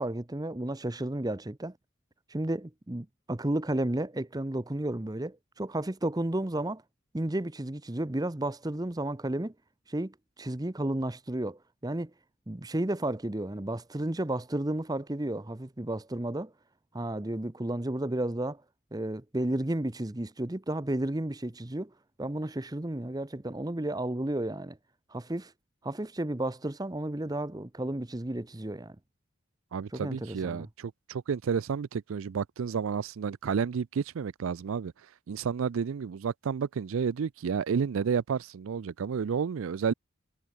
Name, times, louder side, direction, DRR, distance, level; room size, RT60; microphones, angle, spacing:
voice 1, 0.0-1.7 2.3-6.8 7.1-9.5 9.9-12.1 12.5-16.5 16.9-18.6 18.9-21.9 22.2-24.8 25.1-25.5 25.8-29.0 29.9-30.7, right 1 dB, 20° right, 0.8 m, -32 dB
voice 2, 29.7-34.9 35.3-39.9, right 6 dB, 75° right, 0.4 m, -31 dB
head